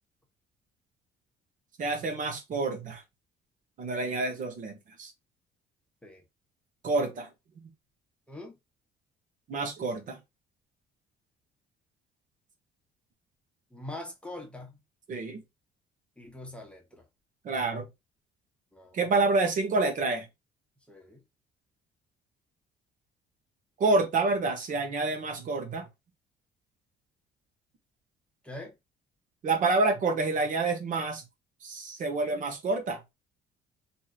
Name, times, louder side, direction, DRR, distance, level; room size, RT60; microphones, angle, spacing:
voice 1, 1.8-3.0 3.8-5.1 6.8-7.3 9.5-10.2 15.1-15.4 17.4-17.9 18.9-20.2 23.8-25.8 29.4-31.2 31.6-33.0, right 3 dB, 50° right, 0.9 m, -28 dB
voice 2, 13.7-14.7 16.2-17.0 18.7-19.0 20.9-21.2 28.4-28.7, left 1 dB, 5° left, 0.9 m, -43 dB
3.0 x 2.7 x 2.3 m
cardioid pair, 110°, 17 cm